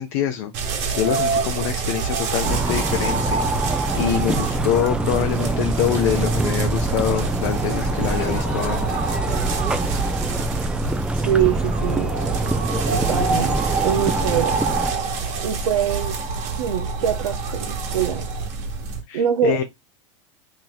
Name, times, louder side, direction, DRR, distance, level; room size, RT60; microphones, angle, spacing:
voice 1, 0.0-3.7 3.9-9.2 19.1-19.6, left 10 dB, 60° left, 0.6 m, -25 dB
sound 1, 0.5-19.0, right 4 dB, 50° right, 1.4 m, -26 dB
sound 2, 2.4-14.9, right 2 dB, 5° right, 0.4 m, -25 dB
voice 2, 11.1-12.1 12.9-13.6 13.8-14.6 15.4-16.2 16.6-18.3 19.1-19.6, right 9 dB, 90° right, 0.5 m, -23 dB
3.0 x 2.7 x 3.9 m
hypercardioid pair, 115°, 16 cm